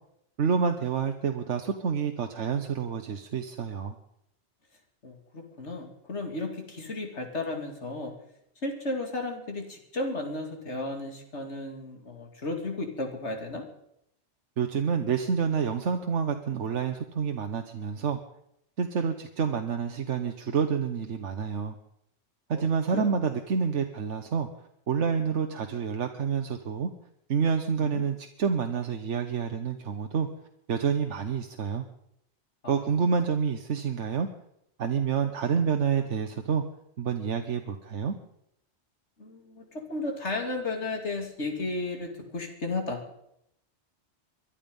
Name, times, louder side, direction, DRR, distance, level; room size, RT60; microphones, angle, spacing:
voice 1, 0.4-3.9 14.6-18.2 18.8-21.8 22.5-24.5 24.9-26.9 27.3-30.3 30.7-31.8 32.7-34.3 34.8-36.6 37.0-38.2, right 6 dB, 85° right, 6 dB, 1.3 m, -28 dB
voice 2, 5.0-8.2 8.6-13.7 22.5-23.2 27.8-28.0 32.6-32.9 33.9-34.0 39.2-43.0, left 2 dB, 75° left, 4 dB, 2.9 m, -34 dB
22.5 x 12.0 x 5.4 m, 0.77 s
omnidirectional pair, 1.2 m